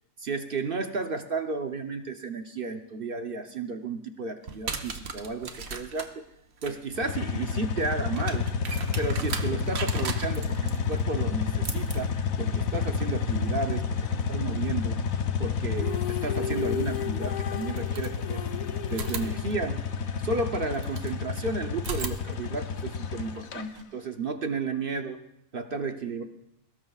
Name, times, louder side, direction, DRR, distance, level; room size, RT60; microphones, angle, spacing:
voice 1, 0.2-6.2 6.6-8.5 9.0-10.6 10.9-14.0 14.3-15.0 15.4-18.4 18.9-19.9 20.2-25.2 25.5-26.3, right 4 dB, 50° right, 6 dB, 0.9 m, -33 dB
sound 1, 4.4-15.2 16.7-16.8 17.5-18.5 18.9-21.2 21.8-23.8, right 5 dB, 85° right, 1.6 m, -40 dB
sound 2, 7.0-23.6, left 6 dB, 80° left, 1.3 m, -30 dB
sound 3, 15.8-20.0, left 9 dB, 45° left, 0.6 m, -36 dB
22.5 x 19.5 x 2.4 m, 0.81 s
omnidirectional pair, 1.4 m